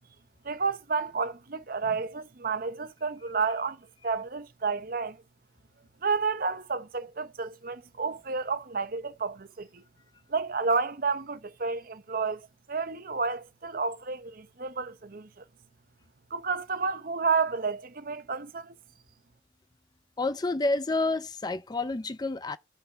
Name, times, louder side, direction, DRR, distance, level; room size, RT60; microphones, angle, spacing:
voice 1, 0.4-5.2 6.0-9.8 10.3-12.4 12.7-15.4 16.3-18.7, right 4 dB, 45° right, 0.8 m, -31 dB
voice 2, 20.2-22.6, left 2 dB, 20° left, 0.4 m, -29 dB
6.0 x 5.7 x 6.6 m
head